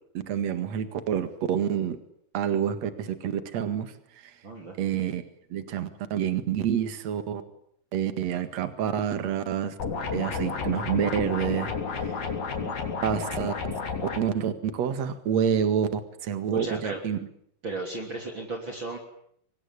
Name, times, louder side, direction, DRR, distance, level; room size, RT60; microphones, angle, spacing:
voice 1, 0.1-2.0 2.3-3.9 4.8-5.2 5.5-7.4 7.9-9.8 10.1-12.1 13.0-13.5 14.2-17.2, right 8 dB, 55° right, 11 dB, 2.9 m, -28 dB
voice 2, 4.4-4.8 12.6-12.7 16.5-17.0 17.6-19.0, right 2 dB, 35° right, 2 dB, 3.9 m, -35 dB
sound 1, 9.8-14.2, left 5 dB, 75° left, 5.0 m, -31 dB
24.5 x 20.5 x 9.9 m, 0.69 s
omnidirectional pair, 4.0 m